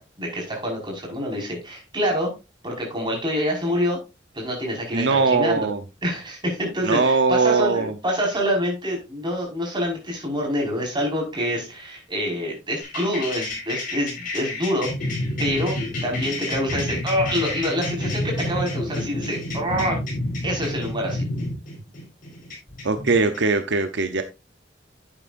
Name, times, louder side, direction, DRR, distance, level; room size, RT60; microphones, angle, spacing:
voice 1, 0.0-2.3 2.6-4.0 4.3-5.7 6.0-14.9 15.4-15.8 16.0-20.0 20.4-21.2, equal, 25° right, -1 dB, 4.9 m, -26 dB
voice 2, 4.9-5.8 6.8-7.9 22.8-24.2, right 4 dB, 65° right, 8 dB, 0.8 m, -20 dB
sound 1, 12.8-23.4, left 1 dB, 45° left, 4.6 m, -29 dB
11.0 x 8.8 x 2.5 m, 0.25 s
head